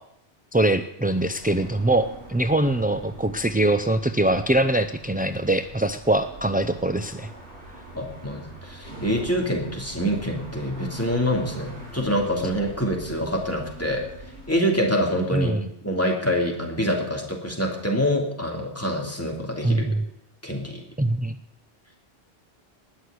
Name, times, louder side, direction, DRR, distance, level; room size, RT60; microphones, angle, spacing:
voice 1, 0.5-7.3 15.3-15.7 19.6-20.0 21.0-21.4, right 1 dB, 15° right, 9 dB, 0.3 m, -23 dB
sound 1, 1.0-14.5, right 1 dB, 85° right, 4.6 m, -42 dB
voice 2, 7.9-14.1 14.5-15.5 15.8-20.0 20.4-20.8, equal, 15° left, 0 dB, 2.9 m, -26 dB
19.5 x 6.5 x 9.6 m, 0.79 s
omnidirectional pair, 1.1 m